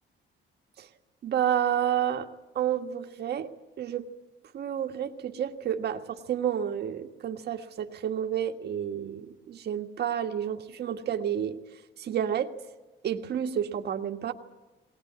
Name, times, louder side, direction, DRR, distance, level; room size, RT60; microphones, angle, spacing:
voice 1, 1.2-2.3 2.5-3.5 3.8-4.1 4.5-11.6 12.0-12.5 13.0-14.3, right 9 dB, 55° right, 5 dB, 1.6 m, -30 dB
20.5 x 20.0 x 9.4 m, 1.1 s
cardioid pair, 170°, 20 cm